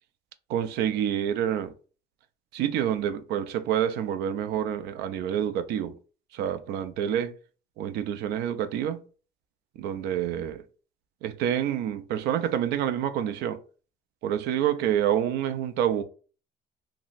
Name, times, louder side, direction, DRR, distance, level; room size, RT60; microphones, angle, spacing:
voice 1, 0.5-1.7 2.5-5.9 6.3-7.3 7.8-9.0 9.8-10.6 11.2-13.6 14.2-16.0, right 10 dB, 80° right, 0.4 m, -27 dB
2.7 x 2.1 x 3.8 m
cardioid pair, 110°, 17 cm